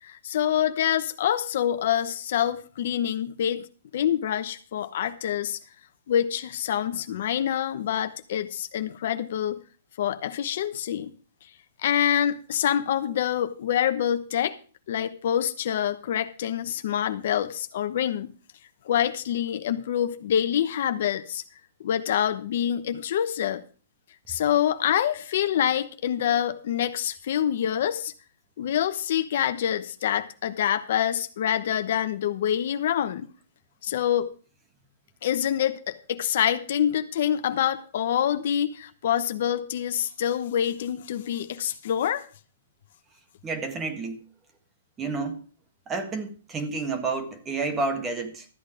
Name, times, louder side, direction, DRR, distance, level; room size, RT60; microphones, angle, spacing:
voice 1, 0.0-3.7 3.9-5.6 6.1-9.6 10.0-11.1 11.8-14.5 14.9-18.3 18.8-21.4 21.8-23.6 24.3-28.1 28.6-33.3 33.8-34.3 35.2-42.3, left 10 dB, 60° left, 1.0 m, -26 dB
voice 2, 43.4-44.2 45.0-45.4 45.9-48.5, right 3 dB, 20° right, 1.5 m, -30 dB
13.0 x 8.2 x 5.0 m
hypercardioid pair, 145°, 0 cm